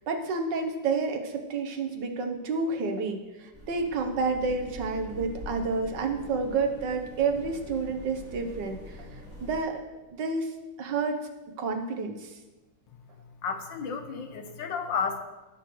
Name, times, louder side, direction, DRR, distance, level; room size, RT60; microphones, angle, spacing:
voice 1, 0.1-9.1 9.4-9.8 10.2-10.5 10.8-11.2 11.6-12.4, right 4 dB, 75° right, 5 dB, 1.7 m, -29 dB
sound 1, 3.5-9.6, left 1 dB, 5° right, 3.1 m, -44 dB
voice 2, 13.4-15.2, left 6 dB, 85° left, 6 dB, 1.7 m, -32 dB
17.5 x 6.9 x 3.1 m, 1.1 s
omnidirectional pair, 2.0 m